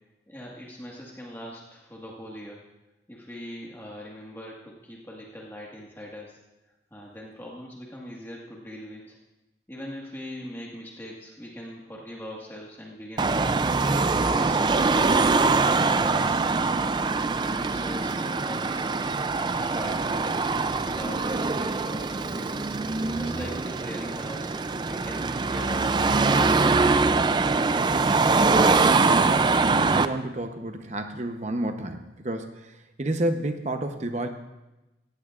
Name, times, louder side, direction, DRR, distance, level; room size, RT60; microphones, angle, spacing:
voice 1, 0.3-2.7 3.1-6.4 6.9-9.2 9.7-13.6 14.2-16.9 17.3-19.1 19.5-20.4 20.6-22.7 23.1-24.5 24.9-27.2, equal, 15° left, -3 dB, 1.6 m, -41 dB
Car passing by / Traffic noise roadway noise / Engine, 13.2-30.1, right 3 dB, 25° right, 0.3 m, -23 dB
voice 2, 28.0-34.3, right 1 dB, 40° right, 6 dB, 0.8 m, -31 dB
17.0 x 15.0 x 2.5 m, 1.0 s
head